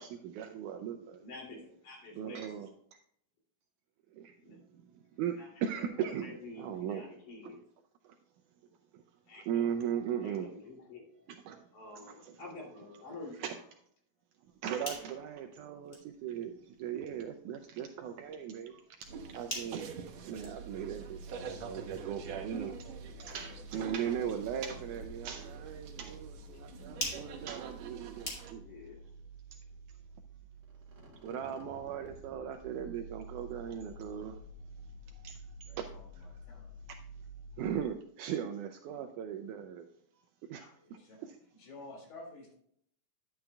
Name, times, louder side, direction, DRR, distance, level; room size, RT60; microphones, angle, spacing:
voice 1, 0.0-1.2 2.2-2.7 4.2-4.3 5.2-7.1 7.4-7.5 9.4-10.5 11.3-12.3 12.8-13.0 13.3-13.6 14.6-18.8 19.3-19.9 20.3-22.8 23.2-28.6 31.2-34.4 35.2-35.3 35.8-35.9 37.6-39.9 40.5-40.7 41.2-41.4, right 9 dB, 85° right, 6 dB, 1.8 m, -38 dB
voice 2, 1.2-2.7 4.4-4.6 5.4-7.6 9.3-9.7 10.2-11.3 11.7-13.5 28.6-29.1 40.6-40.7, left 2 dB, 60° left, -3 dB, 4.1 m, -49 dB
sound 1, 14.4-28.9, left 1 dB, 25° left, 2.3 m, -48 dB
sound 2, 19.0-28.5, right 6 dB, 65° right, 1.8 m, -47 dB
sound 3, 20.3-37.9, right 2 dB, 45° right, 2.1 m, -50 dB
voice 3, 35.7-36.7 40.7-41.2 41.6-42.5, left 2 dB, 75° left, -1 dB, 4.1 m, -51 dB
11.0 x 8.7 x 2.3 m, 0.66 s
omnidirectional pair, 4.0 m